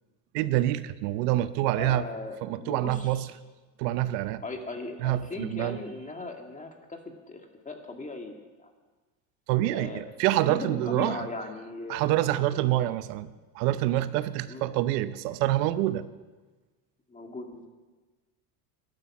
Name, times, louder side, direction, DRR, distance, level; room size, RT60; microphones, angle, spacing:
voice 1, 0.3-2.0 2.4-3.3 3.8-4.4 5.0-5.8 9.5-11.3 11.9-16.0, right 14 dB, 85° right, 14 dB, 0.8 m, -26 dB
voice 2, 1.8-3.2 4.4-7.0 7.3-8.7 9.7-10.0 10.4-12.8 14.5-14.6 17.1-17.7, left 2 dB, 15° left, 3 dB, 2.0 m, -38 dB
12.0 x 12.0 x 7.3 m, 1.3 s
supercardioid pair, 120°, 48 cm